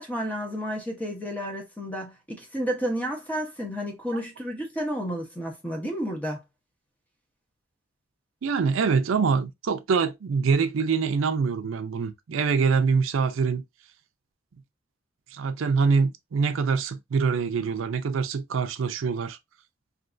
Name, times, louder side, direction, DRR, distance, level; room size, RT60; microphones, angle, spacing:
voice 1, 0.0-6.4, equal, 10° left, 0.9 m, -31 dB
voice 2, 8.4-13.6 15.3-19.4, right 5 dB, 80° right, 0.4 m, -24 dB
3.3 x 2.7 x 2.5 m
head